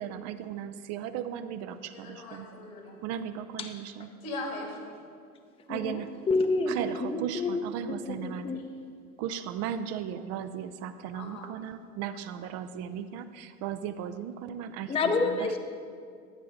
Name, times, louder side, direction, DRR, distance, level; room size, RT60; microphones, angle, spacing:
voice 1, 0.0-2.5 3.0-4.1 5.7-6.1 6.7-8.6 9.2-15.0 15.3-15.6, right 9 dB, 40° right, 11 dB, 0.5 m, -36 dB
voice 2, 1.9-2.9 4.2-5.0 11.1-11.6, left 2 dB, 75° left, -1 dB, 2.8 m, -39 dB
voice 3, 5.7-6.0 6.3-8.6 14.9-15.6, left 3 dB, 15° left, 5 dB, 0.7 m, -29 dB
12.5 x 8.5 x 3.8 m, 2.2 s
figure-of-eight pair, 75°, 42 cm